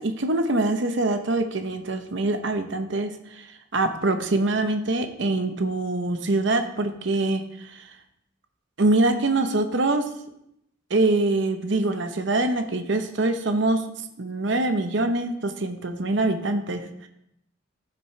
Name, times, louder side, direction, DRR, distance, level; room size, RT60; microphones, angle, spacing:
voice 1, 0.0-3.5 3.7-7.8 8.8-10.0 10.9-13.8 14.2-17.1, right 2 dB, 60° right, 7 dB, 0.8 m, -24 dB
15.0 x 6.2 x 3.2 m, 0.78 s
head